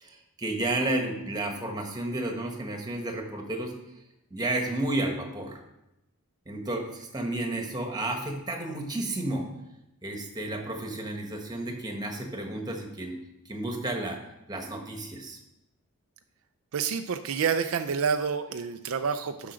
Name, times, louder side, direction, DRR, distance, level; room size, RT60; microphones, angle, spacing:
voice 1, 0.0-3.7 4.3-5.6 6.5-9.5 10.0-13.1 13.5-14.2 14.5-15.4, right 1 dB, 20° right, 3 dB, 1.4 m, -32 dB
voice 2, 16.7-19.5, right 6 dB, 70° right, 8 dB, 0.5 m, -28 dB
7.6 x 5.9 x 6.2 m, 0.90 s
head